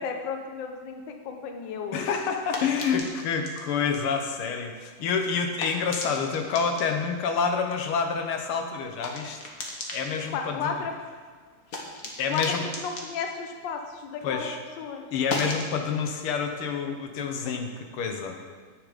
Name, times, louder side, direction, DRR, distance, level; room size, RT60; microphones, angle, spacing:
voice 1, 0.0-2.1 10.3-10.9 12.3-14.5 14.8-15.1, left 5 dB, 65° left, 5 dB, 1.5 m, -33 dB
sound 1, 1.7-14.5 14.8-18.0, left 2 dB, 45° left, 1.6 m, -40 dB
voice 2, 1.9-9.4 9.9-10.7 12.2-12.6 14.2-14.6 15.1-18.4, left 6 dB, 85° left, 5 dB, 1.9 m, -28 dB
9.8 x 8.6 x 5.0 m, 1.5 s
omnidirectional pair, 2.3 m